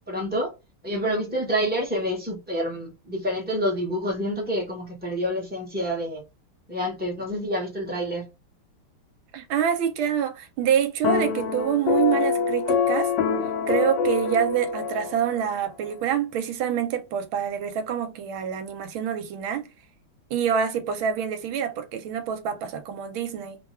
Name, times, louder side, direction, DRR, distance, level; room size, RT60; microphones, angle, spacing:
voice 1, 0.1-0.5 0.8-6.2 6.7-8.3, equal, 5° right, 0.7 m, -28 dB
voice 2, 9.3-13.1 13.7-19.7 20.3-23.6, right 8 dB, 75° right, 1.4 m, -26 dB
sound 1, 11.0-15.5, left 5 dB, 65° left, 1.2 m, -25 dB
3.5 x 2.2 x 4.3 m
omnidirectional pair, 2.4 m